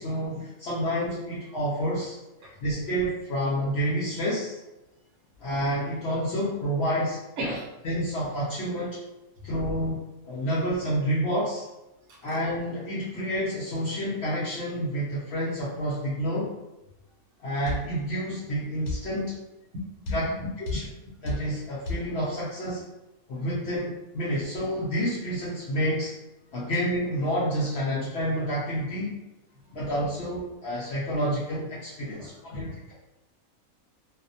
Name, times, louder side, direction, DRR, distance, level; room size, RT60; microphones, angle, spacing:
voice 1, 0.0-4.6 5.4-7.5 7.8-9.0 9.4-11.7 12.2-16.5 17.4-19.3 20.1-20.3 20.7-20.9 21.2-22.8 23.3-26.1 26.5-29.1 29.7-32.9, equal, 65° left, -7 dB, 0.7 m, -29 dB
voice 2, 7.4-7.7 12.1-12.4 19.7-20.1 20.7-20.8 29.7-29.8 32.2-32.7, equal, 65° right, -1 dB, 0.9 m, -36 dB
sound 1, 17.7-17.9 18.9-19.1 20.1-20.3 20.7-20.9 21.3-21.5 21.9-22.1, left 2 dB, 85° left, 1.0 m, -30 dB
2.4 x 2.1 x 2.6 m, 1.0 s
omnidirectional pair, 1.4 m